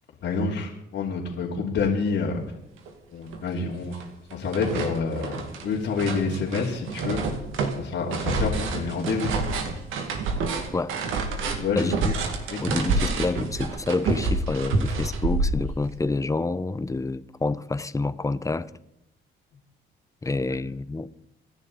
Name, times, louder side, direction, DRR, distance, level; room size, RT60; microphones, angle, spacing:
voice 1, 0.2-2.4 3.1-4.0 4.3-7.2 7.8-9.3 11.6-12.0 12.5-12.6, left 4 dB, 70° left, 3.0 m, -28 dB
sound 1, 2.9-3.0 3.3-4.0 4.3-16.0, right 3 dB, 90° right, 2.2 m, -28 dB
voice 2, 11.8-12.1 12.6-18.7 20.2-21.1, left 3 dB, 15° left, 0.8 m, -28 dB
26.5 x 11.0 x 4.2 m
cardioid pair, 90°, 20 cm